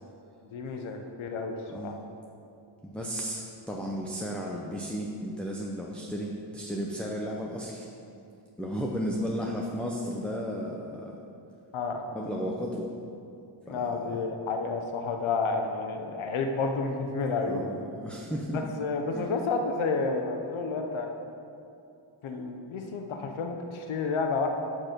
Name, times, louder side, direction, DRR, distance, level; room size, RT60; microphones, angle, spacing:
voice 1, 0.5-1.6 1.8-1.9 11.7-12.0 13.7-17.6 18.5-21.1 22.2-24.5, left 4 dB, 70° left, 4 dB, 0.8 m, -30 dB
voice 2, 2.8-7.9 8.6-11.2 12.1-12.9 13.7-14.2 17.5-18.6 19.1-19.3, equal, ahead, -2 dB, 0.5 m, -34 dB
6.4 x 6.0 x 5.1 m, 2.7 s
cardioid pair, 90°, 49 cm